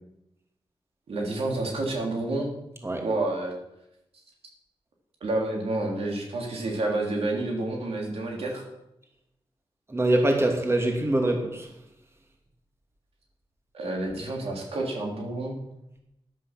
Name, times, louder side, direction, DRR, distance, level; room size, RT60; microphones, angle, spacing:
voice 1, 1.1-2.5 3.0-3.5 5.2-8.6 13.7-15.6, right 2 dB, 85° right, 0 dB, 3.3 m, -29 dB
voice 2, 9.9-11.7, right 1 dB, 25° right, 2 dB, 2.6 m, -24 dB
13.0 x 11.0 x 6.0 m, 0.85 s
wide cardioid pair, 95°, 10 cm